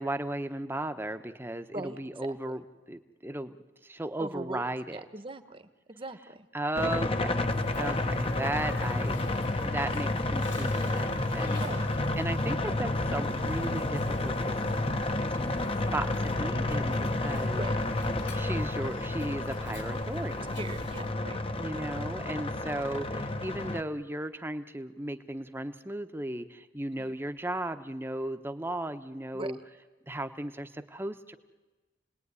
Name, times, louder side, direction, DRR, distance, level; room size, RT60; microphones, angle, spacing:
voice 1, 0.0-2.6 2.9-3.6 3.8-5.0 6.5-7.3 7.8-9.3 9.6-11.6 12.2-14.6 15.9-17.6 18.3-20.5 21.6-29.6 30.1-31.4, right 1 dB, 10° right, 8 dB, 1.1 m, -35 dB
voice 2, 1.7-2.3 4.2-5.6 5.9-6.5 11.5-11.9 17.6-17.8 20.5-21.4 27.0-27.1 29.3-29.5, right 2 dB, 30° right, 10 dB, 1.3 m, -40 dB
sound 1, 6.8-23.8, left 2 dB, 30° left, 1.1 m, -30 dB
Sneeze, 7.4-21.1, left 1 dB, 80° left, 5.2 m, -46 dB
30.0 x 19.5 x 9.8 m, 1.2 s
head